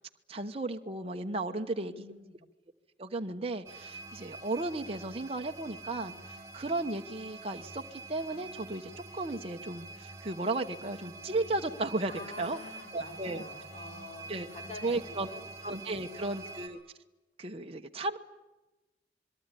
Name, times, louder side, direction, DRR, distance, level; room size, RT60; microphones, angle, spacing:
voice 1, 0.3-1.9 3.0-12.1 12.4-12.6 12.9-13.4 14.3-14.5 14.8-15.3 15.6-16.8 17.4-18.2, right 2 dB, 35° right, 4 dB, 1.1 m, -35 dB
voice 2, 1.4-2.4 12.1-15.5 15.8-16.5, left 2 dB, 40° left, 3 dB, 5.4 m, -48 dB
sound 1, 3.7-16.7, right 3 dB, 20° right, 5.4 m, -47 dB
27.0 x 22.5 x 9.9 m, 1.1 s
head